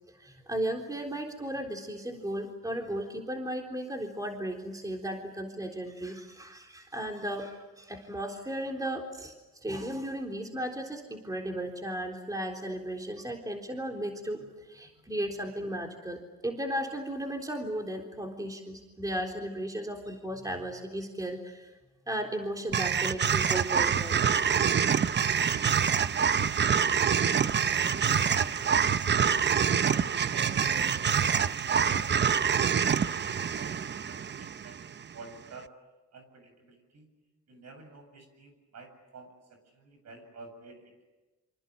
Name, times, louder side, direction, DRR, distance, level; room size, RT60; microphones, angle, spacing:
voice 1, 0.2-21.8 22.1-24.2, right 1 dB, 10° right, 2 dB, 3.7 m, -35 dB
sound 1, 22.7-35.0, right 7 dB, 35° right, 0.8 m, -26 dB
voice 2, 27.5-28.9 29.7-34.8 35.1-35.7 36.1-37.1 37.5-41.1, right 3 dB, 60° right, 7 dB, 7.8 m, -50 dB
26.5 x 26.0 x 8.4 m, 1.1 s
cardioid pair, 90°, 30 cm